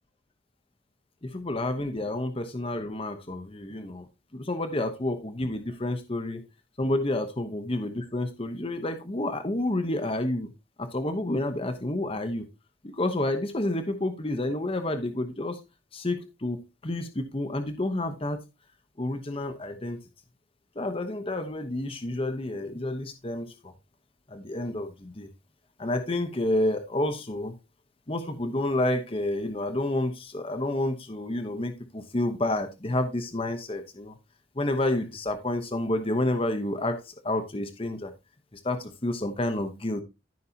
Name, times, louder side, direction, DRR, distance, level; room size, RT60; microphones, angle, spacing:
voice 1, 1.2-4.1 4.3-6.4 6.8-10.5 10.8-12.5 12.8-15.6 15.9-18.4 19.0-20.0 20.7-23.7 24.3-25.3 25.8-27.6 28.1-34.1 34.5-38.1 38.5-40.0, left 1 dB, 30° left, 7 dB, 0.9 m, -29 dB
13.5 x 5.7 x 2.8 m, 0.25 s
head